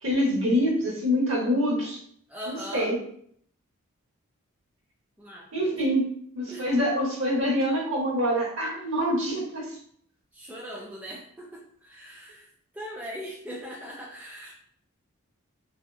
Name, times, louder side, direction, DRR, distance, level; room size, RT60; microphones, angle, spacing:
voice 1, 0.0-2.0 2.5-3.0 5.5-6.1 6.3-9.8, equal, 60° right, -3 dB, 0.9 m, -25 dB
voice 2, 2.3-2.9 5.2-5.5 6.5-6.6 10.3-12.5 12.7-14.5, equal, 5° right, -4 dB, 0.3 m, -40 dB
2.7 x 2.4 x 2.3 m, 0.63 s
head